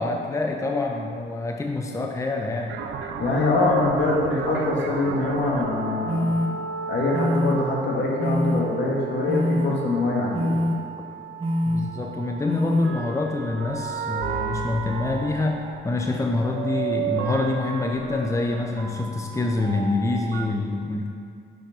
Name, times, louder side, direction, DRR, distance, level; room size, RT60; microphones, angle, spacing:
voice 1, 0.0-2.8 11.6-21.1, left 2 dB, 15° left, 2 dB, 0.7 m, -26 dB
sound 1, 2.7-20.5, right 6 dB, 75° right, 0.7 m, -34 dB
voice 2, 3.2-6.3 6.9-10.6, left 2 dB, 65° left, -3 dB, 1.8 m, -23 dB
sound 2, 5.4-5.5 6.1-6.5 7.1-7.5 8.2-8.6 9.3-9.7 10.3-10.7 11.4-11.8 12.5-12.9, left 1 dB, 30° right, 1.1 m, -24 dB
6.4 x 5.8 x 5.9 m, 2.4 s
cardioid pair, 90°, 20 cm